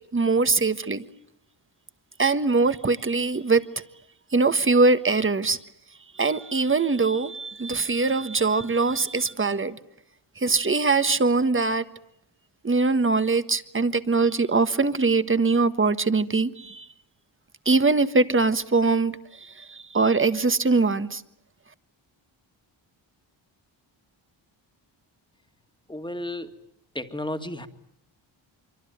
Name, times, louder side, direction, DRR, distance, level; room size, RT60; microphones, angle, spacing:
voice 1, 0.1-1.0 2.2-3.6 4.3-5.6 6.1-9.8 10.4-11.9 12.6-16.9 17.6-21.2, right 3 dB, 25° right, 1.4 m, -22 dB
voice 2, 25.9-26.5 26.9-27.7, left 1 dB, 10° left, 2.1 m, -32 dB
25.5 x 24.5 x 9.4 m
cardioid pair, 90°, 48 cm